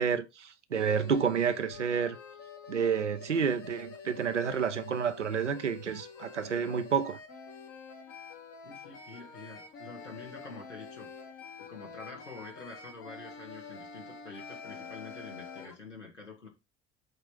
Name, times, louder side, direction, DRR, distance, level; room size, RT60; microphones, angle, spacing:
voice 1, 0.0-2.2 2.7-7.2, right 6 dB, 90° right, 0.6 m, -29 dB
sound 1, 0.7-15.7, left 5 dB, 55° left, 1.8 m, -47 dB
voice 2, 8.6-11.1 11.6-16.5, left 4 dB, 90° left, 2.0 m, -47 dB
7.8 x 3.5 x 4.7 m
figure-of-eight pair, 55°, 35 cm